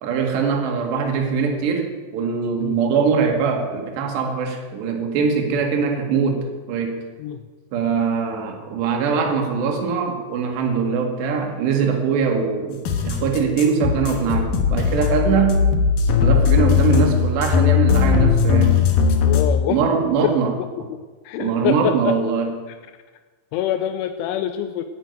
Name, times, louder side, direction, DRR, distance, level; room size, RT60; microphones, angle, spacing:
voice 1, 0.0-7.0 7.7-15.7 16.2-18.8 19.7-20.5 21.4-22.5, right 6 dB, 65° right, 3 dB, 4.0 m, -22 dB
sound 1, 12.8-19.5, left 7 dB, 65° left, 2.3 m, -18 dB
voice 2, 19.2-19.8 20.2-20.3 20.9-21.0 21.3-22.2 23.5-24.8, left 11 dB, 85° left, 8 dB, 3.1 m, -25 dB
12.0 x 10.5 x 9.3 m, 1.4 s
omnidirectional pair, 5.6 m